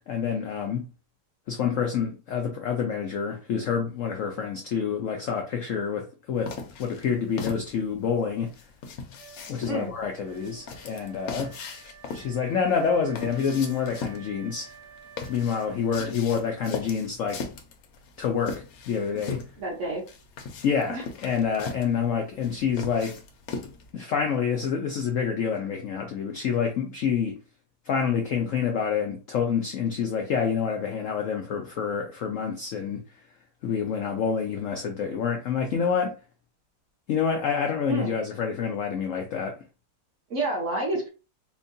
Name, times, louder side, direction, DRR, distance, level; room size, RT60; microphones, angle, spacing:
voice 1, 0.1-0.9 1.5-6.5 6.8-8.5 9.5-11.5 12.1-14.7 15.3-17.4 18.2-19.4 20.6-23.2 23.9-27.4 27.9-33.0 33.6-36.2 37.1-39.6, left 6 dB, 85° left, 0.6 m, -27 dB
sound 1, 6.4-23.9, left 5 dB, 65° left, 1.0 m, -39 dB
Wind instrument woodwind instrument, 9.2-16.7, right 8 dB, 90° right, 0.6 m, -51 dB
voice 2, 19.6-20.0 20.9-21.0 37.9-38.2 40.3-41.1, right 2 dB, 50° right, 1.0 m, -29 dB
4.4 x 2.2 x 2.6 m
omnidirectional pair, 2.0 m